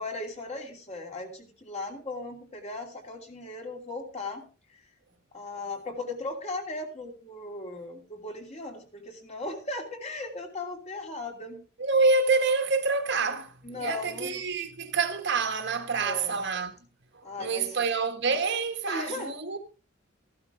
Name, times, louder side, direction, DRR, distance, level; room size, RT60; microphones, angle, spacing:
voice 1, 0.0-4.4 5.3-11.6 13.6-14.4 16.0-16.4 17.2-17.8 18.9-19.3, left 2 dB, 30° left, 2.8 m, -37 dB
voice 2, 11.8-16.7 17.2-19.6, right 4 dB, 55° right, 1.7 m, -27 dB
14.5 x 12.0 x 3.6 m
head